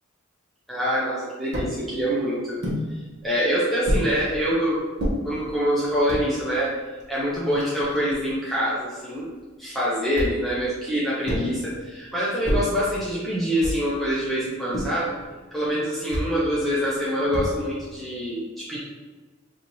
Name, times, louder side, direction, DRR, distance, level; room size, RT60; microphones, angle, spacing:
voice 1, 0.7-2.7 3.2-4.9 5.2-6.7 7.1-9.3 9.6-15.1 15.5-18.8, equal, ahead, -9 dB, 0.6 m, -25 dB
sound 1, 1.5-1.8 2.6-2.8 3.8-4.1 5.0-5.2 5.9-6.3 7.0-7.1 7.3-8.3 10.1-10.5 11.2-11.6 12.4-12.8 13.6-14.0 14.7-15.1 16.1-16.4 17.3-17.8, equal, 55° right, 1.0 m, -27 dB
3.0 x 2.7 x 4.0 m, 1.3 s
head